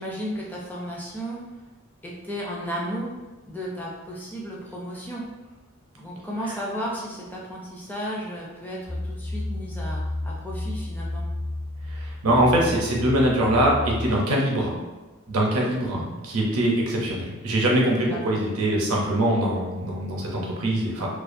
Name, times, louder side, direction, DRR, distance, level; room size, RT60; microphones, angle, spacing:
voice 1, 0.0-1.4 2.0-3.1 3.5-5.2 6.0-11.2 18.0-18.4, equal, 10° left, -4 dB, 0.4 m, -34 dB
sound 1, 8.9-14.2, left 1 dB, 45° left, 0.9 m, -32 dB
voice 2, 11.9-14.8 15.3-21.1, right 1 dB, 90° right, -2 dB, 0.6 m, -23 dB
2.3 x 2.2 x 2.5 m, 1.2 s
head